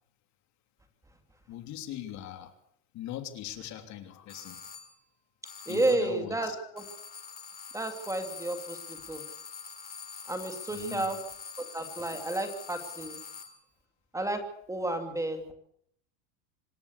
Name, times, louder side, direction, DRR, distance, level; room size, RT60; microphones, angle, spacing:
voice 1, 1.5-2.5 2.9-4.6 5.7-6.7 10.7-11.1, left 11 dB, 45° left, 7 dB, 3.2 m, -41 dB
sound 1, 4.3-5.0 5.4-6.2 6.8-13.6, left 6 dB, 25° left, 3.5 m, -44 dB
voice 2, 5.7-6.8 7.7-9.2 10.3-11.2 11.6-13.2 14.1-15.5, right 2 dB, 10° right, 6 dB, 2.7 m, -32 dB
26.0 x 13.0 x 8.3 m, 0.68 s
supercardioid pair, 135°, 39 cm